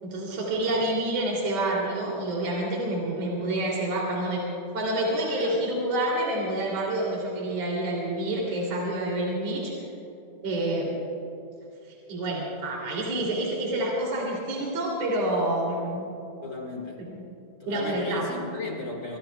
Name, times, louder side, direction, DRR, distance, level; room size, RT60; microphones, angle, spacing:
voice 1, 0.0-4.5 4.7-9.7 10.4-10.9 11.9-16.1 17.0-17.2 17.7-18.2, right 1 dB, 50° right, -3 dB, 3.9 m, -28 dB
voice 2, 16.4-17.0 17.6-19.2, left 3 dB, 40° left, -1 dB, 2.2 m, -35 dB
25.0 x 24.0 x 2.3 m, 2.8 s
omnidirectional pair, 3.7 m